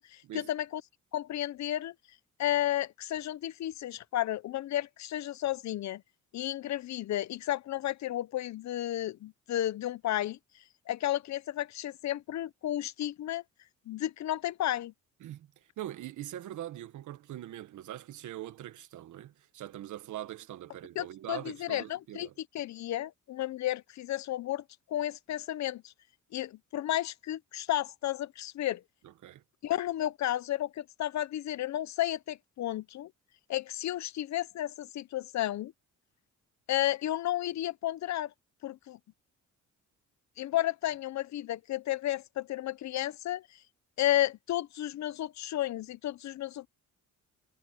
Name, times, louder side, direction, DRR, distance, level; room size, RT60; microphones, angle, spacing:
voice 1, 0.1-0.8 1.1-1.9 2.4-6.0 6.3-10.4 10.9-13.4 13.9-14.9 21.0-22.3 22.5-24.6 24.9-25.9 26.3-28.8 29.6-33.1 33.5-35.7 36.7-38.3 38.6-39.0 40.4-43.4 44.0-46.7, left 13 dB, 65° left, 0.8 m, -32 dB
voice 2, 15.2-15.5 15.8-22.3 29.0-29.4, right 13 dB, 80° right, 1.5 m, -42 dB
cardioid pair, 90°, 30 cm